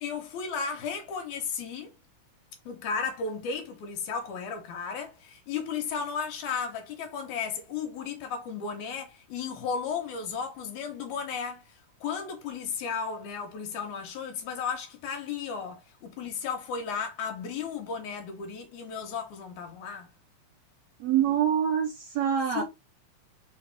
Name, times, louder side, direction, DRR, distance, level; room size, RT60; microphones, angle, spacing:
voice 1, 0.0-1.9 2.7-11.7 12.0-20.1 22.5-22.6, left 6 dB, 80° left, 2.2 m, -34 dB
voice 2, 21.0-22.6, right 9 dB, 75° right, 1.8 m, -25 dB
4.3 x 3.4 x 3.3 m
omnidirectional pair, 3.5 m